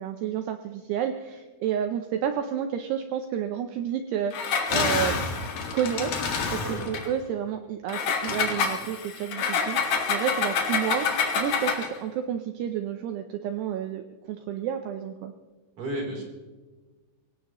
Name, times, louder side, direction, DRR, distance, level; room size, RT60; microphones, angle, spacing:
voice 1, 0.0-5.3 5.7-6.1 6.5-14.0 14.3-15.3, right 9 dB, 80° right, 7 dB, 2.5 m, -30 dB
Engine, 4.3-7.1 7.9-12.0, left 5 dB, 55° left, 3.1 m, -27 dB
voice 2, 15.8-16.2, right 1 dB, 45° right, -1 dB, 4.7 m, -32 dB
24.5 x 17.0 x 3.1 m, 1.3 s
omnidirectional pair, 5.6 m